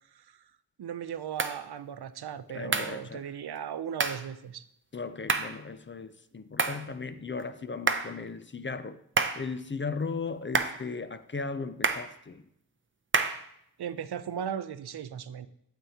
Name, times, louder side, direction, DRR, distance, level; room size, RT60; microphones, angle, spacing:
voice 1, 0.1-0.4 0.8-4.7 13.8-15.5, right 8 dB, 80° right, 0.5 m, -37 dB
sound 1, 1.4-1.6 2.7-3.0 4.0-4.3 5.3-5.6 6.6-6.9 7.9-8.2 9.2-9.5 10.5-10.8 11.8-12.1 13.1-13.5, right 4 dB, 30° right, 0.6 m, -28 dB
voice 2, 2.5-3.3 4.9-9.0 9.4-12.4, left 4 dB, 30° left, 0.5 m, -37 dB
8.8 x 7.2 x 2.8 m
wide cardioid pair, 60°, 38 cm